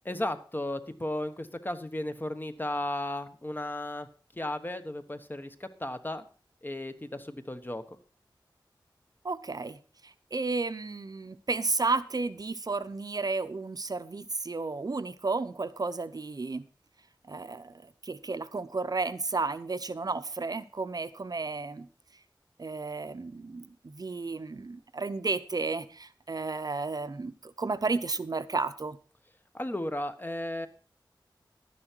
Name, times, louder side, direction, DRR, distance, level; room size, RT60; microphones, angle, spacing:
voice 1, 0.0-4.1 4.4-6.2 6.6-7.8 29.5-30.7, left 1 dB, 25° left, 9 dB, 1.2 m, -34 dB
voice 2, 9.2-16.7 17.3-21.9 22.6-29.0, right 3 dB, 50° right, 12 dB, 0.7 m, -33 dB
11.5 x 10.5 x 4.5 m, 0.37 s
wide cardioid pair, 90°, 8 cm